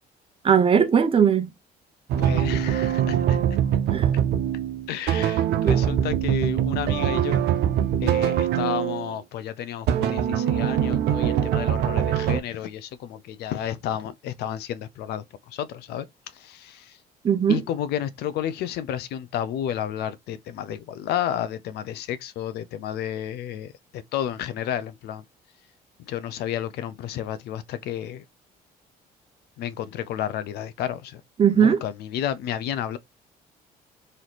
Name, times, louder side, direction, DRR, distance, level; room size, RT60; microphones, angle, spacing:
voice 1, 0.4-1.5 3.9-4.1 5.5-5.8 17.2-17.6 31.4-31.8, right 7 dB, 35° right, 0.7 m, -19 dB
sound 1, 2.1-9.1 9.9-12.4, right 10 dB, 75° right, 0.6 m, -23 dB
voice 2, 2.2-3.4 4.9-7.4 8.0-16.1 16.3-17.0 17.5-25.2 26.0-28.2 29.6-31.2 31.5-33.0, left 10 dB, 75° left, 0.5 m, -31 dB
3.2 x 2.7 x 3.9 m
cardioid pair, 110°, 17 cm